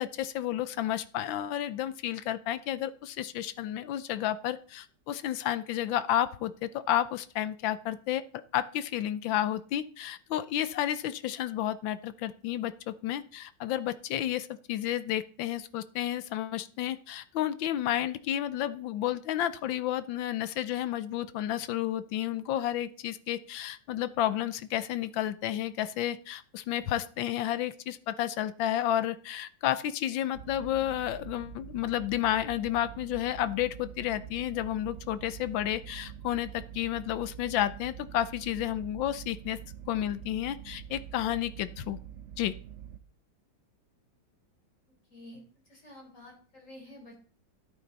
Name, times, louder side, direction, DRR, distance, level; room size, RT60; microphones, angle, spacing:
voice 1, 0.0-8.2 8.5-39.6 39.9-42.0 42.4-42.5, left 12 dB, 80° left, 14 dB, 1.4 m, -31 dB
sound 1, 30.3-43.0, right 9 dB, 60° right, 0.7 m, -45 dB
voice 2, 45.1-47.2, left 1 dB, 40° left, 0 dB, 4.5 m, -50 dB
12.5 x 10.5 x 4.0 m, 0.43 s
omnidirectional pair, 2.1 m